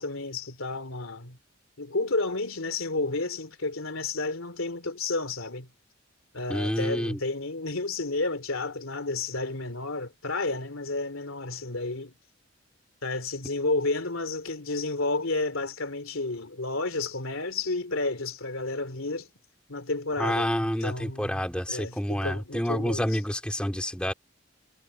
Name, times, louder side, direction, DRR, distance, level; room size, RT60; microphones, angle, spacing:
voice 1, 0.0-1.4 1.8-5.7 6.3-12.1 13.0-19.3 19.7-21.4 21.7-23.1, left 3 dB, 80° left, 3.0 m, -31 dB
voice 2, 6.5-7.2 20.2-24.1, equal, 5° left, 3.6 m, -28 dB
head